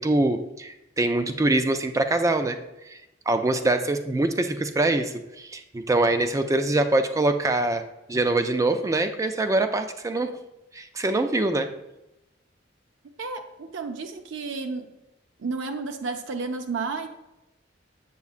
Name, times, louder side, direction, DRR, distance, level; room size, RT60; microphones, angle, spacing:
voice 1, 0.0-2.6 2.9-3.0 3.3-10.3 10.7-11.7, right 2 dB, 15° right, 8 dB, 0.3 m, -24 dB
voice 2, 13.2-14.9 15.4-17.1, right 4 dB, 80° right, 6 dB, 0.5 m, -32 dB
7.3 x 6.9 x 2.4 m, 0.94 s
head